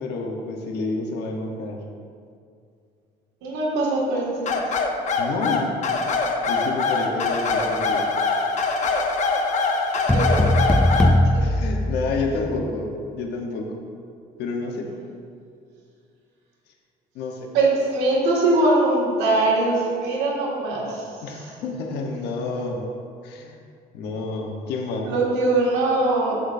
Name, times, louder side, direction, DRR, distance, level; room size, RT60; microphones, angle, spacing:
voice 1, 0.0-1.8 5.2-5.8 6.5-8.0 11.4-13.7 14.4-14.9 17.1-17.4 21.2-23.0 23.2-23.6 23.9-25.1, left 3 dB, 80° left, 1 dB, 1.2 m, -29 dB
voice 2, 3.4-4.6 10.1-10.5 11.3-11.4 17.5-21.0 21.3-21.5 25.0-26.3, right 2 dB, 90° right, -4 dB, 2.2 m, -22 dB
sound 1, 4.5-11.2, left 4 dB, 45° left, 0.9 m, -23 dB
sound 2, 10.1-12.6, left 1 dB, 5° left, 0.4 m, -20 dB
14.0 x 6.2 x 2.7 m, 2.4 s
cardioid pair, 110°, 17 cm